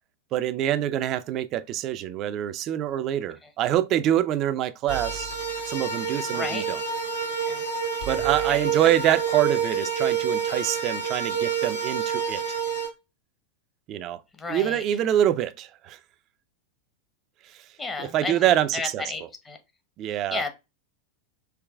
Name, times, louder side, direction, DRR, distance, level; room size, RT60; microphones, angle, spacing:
voice 1, 0.3-5.3 5.7-6.8 8.1-12.6 13.9-14.2 14.5-16.0 18.0-19.0 20.0-20.4, right 12 dB, 35° right, 0.4 m, -25 dB
sound 1, 4.9-12.9, right 6 dB, 75° left, 1.3 m, -28 dB
voice 2, 6.3-6.6 7.5-7.6 8.5-9.1 14.3-14.8 17.8-19.6 20.3-20.5, left 3 dB, 15° left, 0.8 m, -33 dB
4.7 x 3.2 x 2.2 m
figure-of-eight pair, 90°, 0 cm